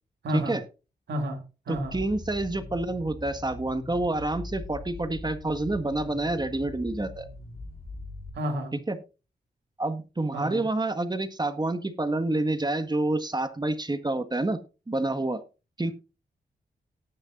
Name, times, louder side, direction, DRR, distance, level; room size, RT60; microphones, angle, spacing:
voice 1, 0.2-0.5 1.1-2.0 8.3-8.7 10.3-10.6, equal, 75° right, 3 dB, 2.6 m, -31 dB
sound 1, 1.7-8.3, left 2 dB, 65° left, 4.6 m, -41 dB
voice 2, 1.7-7.3 8.9-9.0 9.8-14.6 14.9-15.4 15.8-15.9, right 2 dB, 25° right, 9 dB, 1.6 m, -28 dB
18.0 x 6.6 x 2.6 m, 0.31 s
cardioid pair, 50°, 18 cm